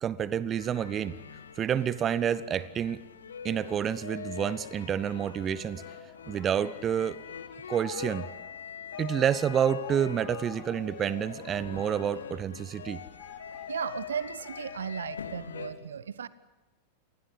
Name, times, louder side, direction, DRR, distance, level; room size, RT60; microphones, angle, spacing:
voice 1, 0.0-1.2 1.6-3.0 3.4-5.8 6.3-7.2 7.7-8.3 9.0-13.0, right 9 dB, 25° right, 19 dB, 0.8 m, -29 dB
sound 1, 0.6-15.7, left 7 dB, 70° left, 1.6 m, -43 dB
Singing, 4.3-15.3, left 7 dB, 35° left, 4.5 m, -50 dB
voice 2, 13.7-16.3, right 7 dB, 65° right, 19 dB, 0.9 m, -35 dB
28.0 x 20.5 x 8.2 m, 1.1 s
figure-of-eight pair, 90°, 0 cm